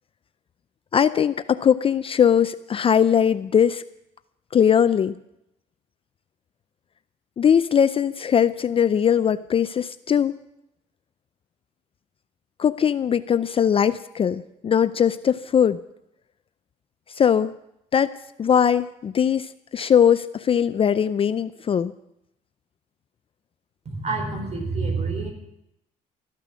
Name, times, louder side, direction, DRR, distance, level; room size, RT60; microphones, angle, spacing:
voice 1, 0.9-3.8 4.5-5.1 7.4-10.4 12.6-15.8 17.2-17.5 17.9-18.1 18.4-21.9, left 8 dB, 35° left, 14 dB, 0.4 m, -20 dB
voice 2, 23.8-25.3, right 3 dB, 40° right, 4 dB, 4.3 m, -27 dB
14.0 x 12.0 x 6.2 m, 0.83 s
cardioid pair, 110°, 17 cm